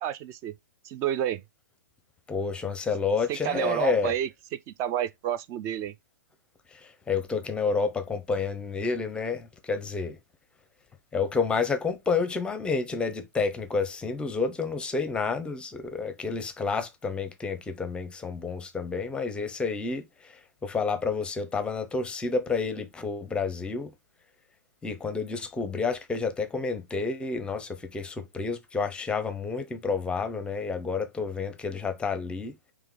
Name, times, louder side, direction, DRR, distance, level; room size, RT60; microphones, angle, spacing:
voice 1, 0.0-0.5 0.8-1.4 3.3-5.9, right 10 dB, 30° right, 0.5 m, -30 dB
voice 2, 2.3-4.1 7.1-10.2 11.1-20.0 20.6-23.9 24.8-32.5, left 4 dB, 10° left, 0.7 m, -29 dB
4.5 x 3.0 x 3.6 m
figure-of-eight pair, 120°, 10 cm